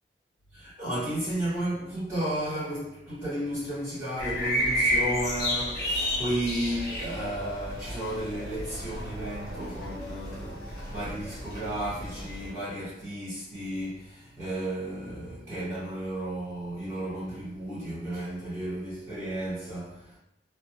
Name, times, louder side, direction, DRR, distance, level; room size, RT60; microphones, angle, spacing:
voice 1, 0.5-20.2, right 1 dB, 20° right, 1.3 m, -33 dB
sound 1, 4.2-12.5, equal, 55° left, 1.0 m, -32 dB
2.5 x 2.1 x 2.9 m
head